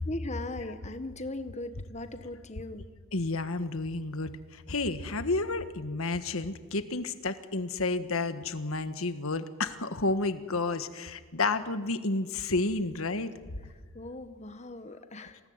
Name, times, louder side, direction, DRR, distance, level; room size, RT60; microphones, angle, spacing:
voice 1, 0.1-2.9 13.9-15.4, left 2 dB, 30° left, 9 dB, 1.4 m, -39 dB
voice 2, 3.1-13.3, left 3 dB, 75° left, 10 dB, 1.5 m, -31 dB
27.0 x 18.5 x 9.6 m, 1.5 s
head